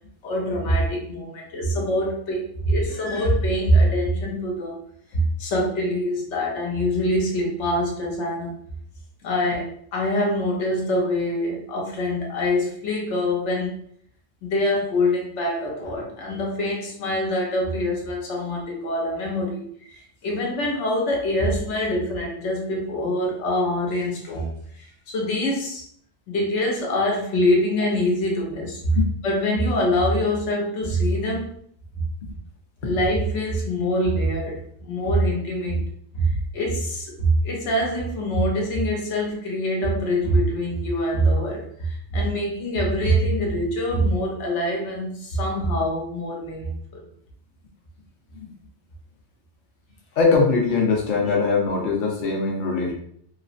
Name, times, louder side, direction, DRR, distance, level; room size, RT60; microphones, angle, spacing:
voice 1, 0.2-4.8 5.1-8.6 9.2-13.7 14.4-24.5 24.8-25.8 26.3-29.0 29.2-31.5 32.0-32.1 32.8-35.8 36.1-46.7, equal, 90° left, -1 dB, 1.1 m, -24 dB
voice 2, 50.2-52.9, left 4 dB, 50° left, -1 dB, 0.7 m, -21 dB
3.1 x 2.0 x 2.5 m, 0.64 s
omnidirectional pair, 1.2 m